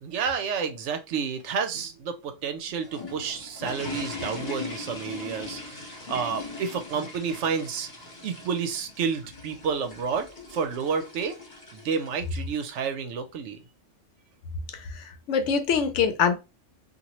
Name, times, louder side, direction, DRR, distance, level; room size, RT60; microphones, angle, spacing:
voice 1, 0.0-7.9 8.2-11.4 11.7-13.6, right 6 dB, 75° right, 0.9 m, -30 dB
sound 1, 2.5-12.8, left 3 dB, 40° left, 1.2 m, -40 dB
voice 2, 14.7-16.4, left 6 dB, 75° left, 0.9 m, -24 dB
2.8 x 2.4 x 2.9 m
omnidirectional pair, 1.3 m